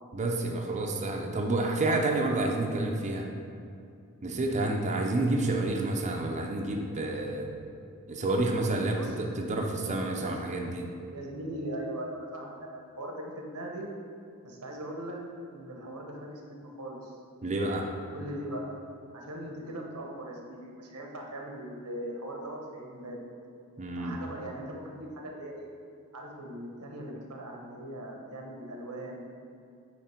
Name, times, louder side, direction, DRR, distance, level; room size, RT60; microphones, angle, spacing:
voice 1, 0.1-3.3 4.2-7.5 8.1-10.9 17.4-17.9 23.8-24.2, right 2 dB, 30° right, 0 dB, 0.5 m, -29 dB
voice 2, 8.9-9.3 10.2-10.5 11.1-13.9 14.4-15.2 15.5-17.1 18.1-18.8 19.1-23.2 24.0-25.7 26.1-29.3, right 1 dB, 90° right, 0 dB, 1.1 m, -40 dB
8.6 x 3.2 x 4.4 m, 2.5 s
head